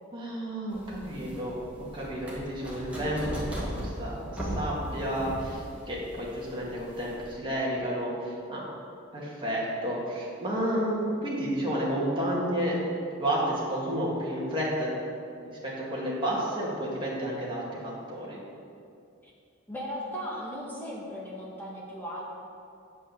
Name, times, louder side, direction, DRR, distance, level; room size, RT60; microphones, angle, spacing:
voice 1, 0.1-8.7 9.1-12.8 13.2-14.9 15.5-18.4, equal, 25° right, -5 dB, 2.0 m, -31 dB
sound 1, 0.7-7.3, equal, 5° right, 1.5 m, -37 dB
voice 2, 19.7-22.2, equal, 10° left, -5 dB, 1.6 m, -37 dB
8.5 x 5.4 x 7.1 m, 2.5 s
head